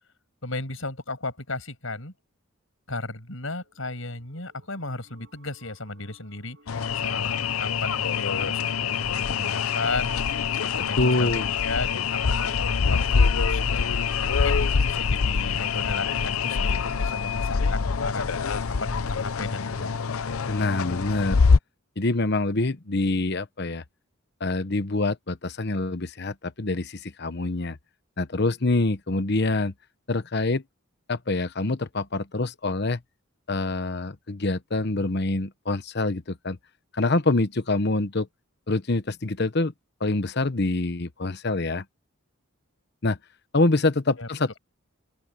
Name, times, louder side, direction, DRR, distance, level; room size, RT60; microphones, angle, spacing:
voice 1, 0.4-2.1 2.9-10.2 10.6-11.3 11.6-13.9 14.3-19.9 44.2-44.3, left 2 dB, 70° left, 6.6 m, -35 dB
sound 1, 3.4-20.9, right 2 dB, 55° right, 7.6 m, -59 dB
sound 2, 6.7-21.6, left 5 dB, 85° left, 0.7 m, -25 dB
voice 2, 10.8-11.5 20.5-21.4 22.0-23.8 24.4-27.8 28.2-29.7 30.1-30.6 31.1-33.0 33.5-36.6 36.9-38.3 38.7-39.7 40.0-41.8 43.0-43.2 43.5-44.6, left 2 dB, 50° left, 1.0 m, -25 dB
open air
head